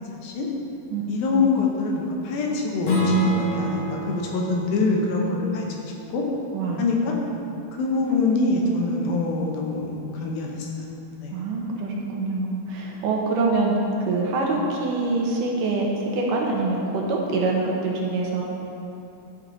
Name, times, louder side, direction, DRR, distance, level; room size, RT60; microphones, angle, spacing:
voice 1, 1.1-6.2 6.8-7.1 7.7-10.9 11.2-11.4, left 3 dB, 80° left, -1 dB, 2.9 m, -25 dB
Strum, 2.8-8.0, right 1 dB, 55° left, 1.5 m, -28 dB
voice 2, 6.5-6.9 11.3-13.7 14.0-18.4, right 3 dB, 70° right, -2 dB, 2.4 m, -25 dB
12.5 x 6.2 x 4.0 m, 3.0 s
omnidirectional pair, 4.2 m